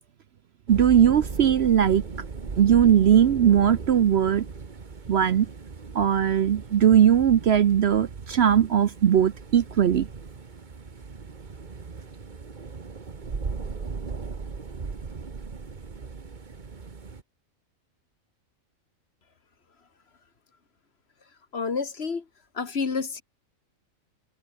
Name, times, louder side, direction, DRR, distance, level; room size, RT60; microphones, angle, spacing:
sound 1, 0.7-17.2, right 4 dB, 35° right, 1.4 m, -38 dB
voice 1, 0.7-2.0 2.6-4.5 5.1-5.5 5.9-10.1, right 9 dB, 55° right, 0.9 m, -19 dB
voice 2, 21.5-22.2 22.6-23.2, left 5 dB, 50° left, 1.7 m, -29 dB
omnidirectional pair, 1.4 m